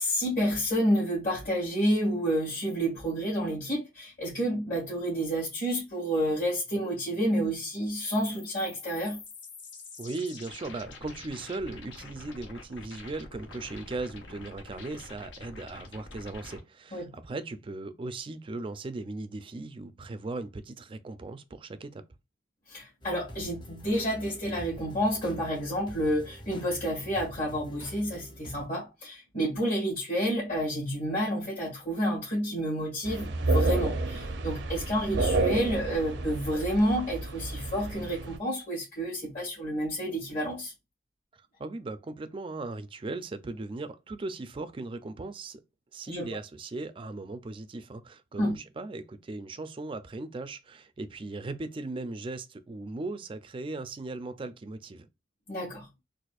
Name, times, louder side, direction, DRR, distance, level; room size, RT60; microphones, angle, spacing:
voice 1, 0.0-9.2 16.9-17.1 22.7-40.7 46.1-46.3 48.4-48.6 55.5-55.9, equal, 55° left, 1.8 m, -29 dB
sound 1, 7.7-16.6, left 3 dB, 85° left, 1.0 m, -46 dB
voice 2, 10.0-22.0 41.6-45.6 45.9-55.1, right 2 dB, 30° right, 0.4 m, -38 dB
sound 2, 23.0-28.7, equal, 25° left, 0.7 m, -46 dB
sound 3, 33.1-38.4, right 2 dB, 75° right, 0.6 m, -30 dB
4.2 x 2.4 x 2.3 m
head